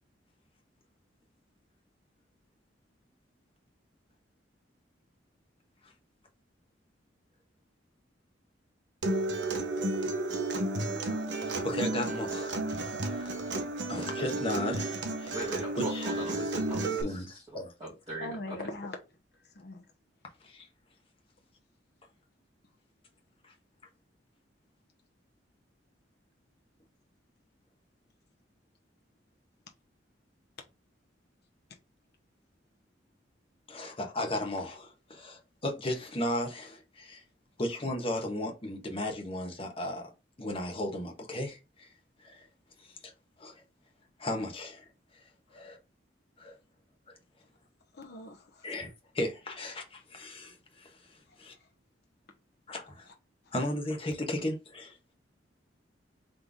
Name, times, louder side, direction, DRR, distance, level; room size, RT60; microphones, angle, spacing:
Acoustic guitar, 9.0-17.0, right 2 dB, 75° right, 0.9 m, -32 dB
voice 1, 11.4-15.4 15.8-16.2 17.0-17.7 20.4-20.7 23.4-23.5 33.7-37.2 37.6-40.1 40.4-41.9 42.2-42.5 42.8-43.1 43.4-43.6 44.2-44.8 45.1-45.8 46.4-46.5 48.6-51.5 52.7-53.1 53.5-55.0, left 1 dB, 30° left, 1.2 m, -36 dB
voice 2, 15.3-18.6, right 2 dB, 25° right, 2.0 m, -40 dB
voice 3, 18.2-19.0 19.5-19.8 47.9-48.7 51.3-51.4 53.5-53.6, left 2 dB, 60° left, 0.9 m, -41 dB
4.0 x 3.3 x 3.5 m
head